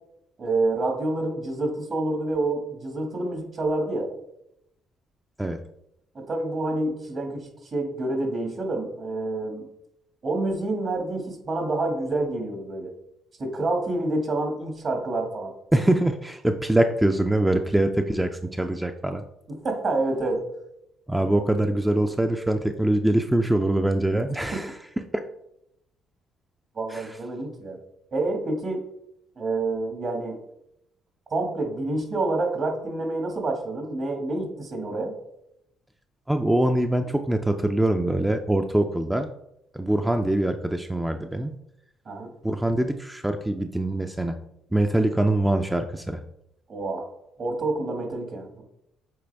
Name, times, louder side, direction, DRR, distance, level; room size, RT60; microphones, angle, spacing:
voice 1, 0.4-4.1 6.1-9.7 10.2-12.9 13.4-15.5 19.5-20.5 24.5-24.6 26.8-27.8 28.1-28.8 29.4-30.4 31.3-35.1 42.1-42.3 46.7-47.1 47.4-48.6, right 2 dB, 50° right, 3 dB, 2.0 m, -28 dB
voice 2, 15.7-19.2 21.1-24.8 26.9-27.2 36.3-39.3 39.7-41.5 42.4-44.4 44.7-46.2, right 1 dB, 10° right, 6 dB, 0.5 m, -23 dB
7.7 x 3.9 x 3.4 m, 0.81 s
supercardioid pair, 65°, 0 cm